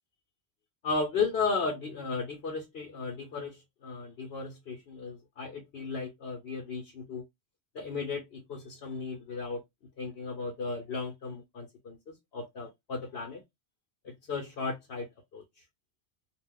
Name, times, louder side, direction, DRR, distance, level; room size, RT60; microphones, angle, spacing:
voice 1, 0.8-7.2 7.7-9.6 10.0-13.4 14.0-15.1 15.3-15.4, left 4 dB, 60° left, 1.0 m, -35 dB
2.4 x 2.3 x 3.6 m
omnidirectional pair, 1.2 m